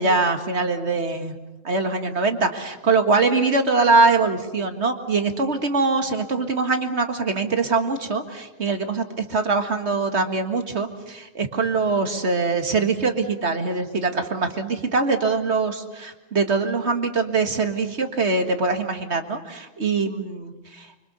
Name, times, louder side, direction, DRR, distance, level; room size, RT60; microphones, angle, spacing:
voice 1, 0.0-1.3 1.6-20.9, right 3 dB, 35° right, 7 dB, 1.2 m, -23 dB
25.5 x 25.0 x 6.8 m, 1.0 s
omnidirectional pair, 3.4 m